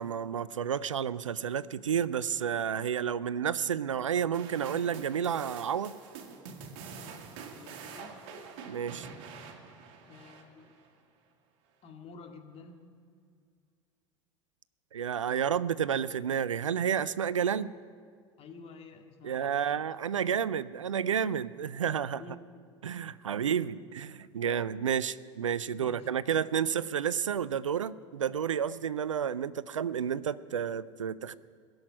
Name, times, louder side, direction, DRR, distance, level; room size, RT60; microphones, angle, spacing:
voice 1, 0.0-5.9 8.6-9.1 14.9-17.7 19.2-22.2 22.8-31.3, right 8 dB, 85° right, 18 dB, 0.4 m, -31 dB
sound 1, 4.3-10.9, right 5 dB, 55° right, 2.1 m, -46 dB
voice 2, 7.5-8.2 10.1-10.8 11.8-12.8 18.4-19.9 22.2-22.6 25.7-26.2, left 4 dB, 40° left, 4 dB, 2.0 m, -50 dB
17.5 x 7.9 x 9.8 m, 2.1 s
figure-of-eight pair, 75°, 16 cm